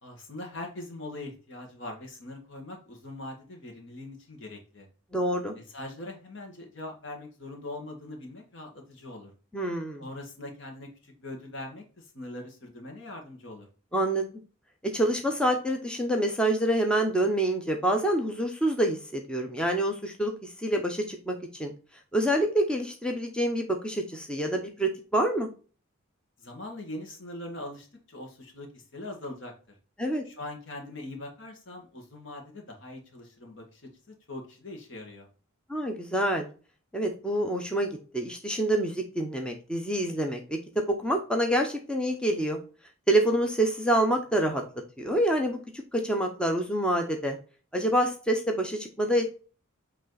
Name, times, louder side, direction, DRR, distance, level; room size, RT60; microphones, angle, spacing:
voice 1, 0.0-4.9 5.5-9.3 10.0-13.7 26.4-29.7 30.2-33.8 34.1-35.3, left 2 dB, 60° left, 1 dB, 1.7 m, -42 dB
voice 2, 5.1-5.5 9.5-10.1 13.9-14.2 14.8-21.7 22.1-25.5 30.0-30.2 35.7-36.5 36.9-42.6 43.1-44.6 45.0-45.6 45.9-47.4 47.7-49.2, right 1 dB, 5° left, 2 dB, 0.7 m, -27 dB
8.2 x 3.3 x 3.9 m, 0.37 s
head